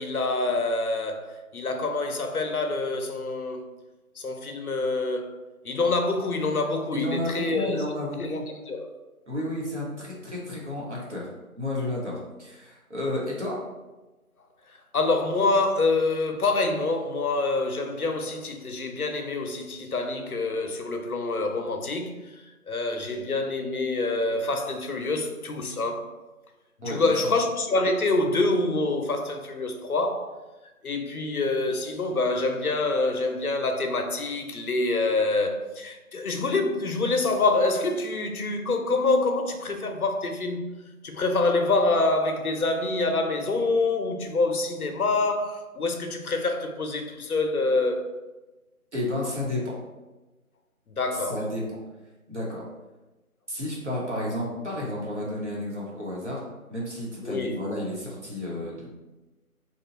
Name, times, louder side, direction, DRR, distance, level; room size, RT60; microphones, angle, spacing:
voice 1, 0.0-3.6 4.2-5.3 5.6-7.8 8.2-8.4 8.7-8.9 14.9-22.3 22.7-26.1 26.9-30.3 30.8-40.7 41.0-48.1 50.9-51.4 57.2-57.6, left 2 dB, 75° left, 0.6 m, -26 dB
voice 2, 6.9-8.4 9.3-11.3 11.6-13.6 26.8-27.3 48.9-49.7 51.3-51.6 52.3-52.7 53.5-56.4 56.7-58.9, left 1 dB, 50° right, 1.1 m, -31 dB
3.0 x 2.4 x 3.9 m
figure-of-eight pair, 180°, 44 cm